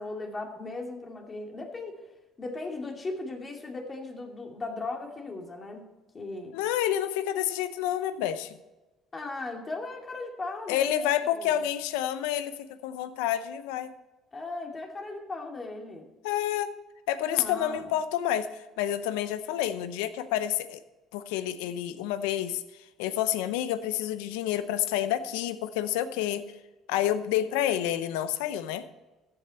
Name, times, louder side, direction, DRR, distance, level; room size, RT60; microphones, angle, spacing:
voice 1, 0.0-2.0 2.4-5.8 6.1-6.5 9.1-11.5 14.3-16.1 17.3-17.9, left 3 dB, 30° left, 2 dB, 2.6 m, -37 dB
voice 2, 6.5-8.6 10.7-12.5 12.8-13.9 16.2-16.7 17.1-20.8 21.1-22.6 23.0-26.4 26.9-28.8, left 11 dB, 90° left, 13 dB, 0.7 m, -29 dB
14.5 x 7.9 x 4.3 m, 1.1 s
supercardioid pair, 85°, 0 cm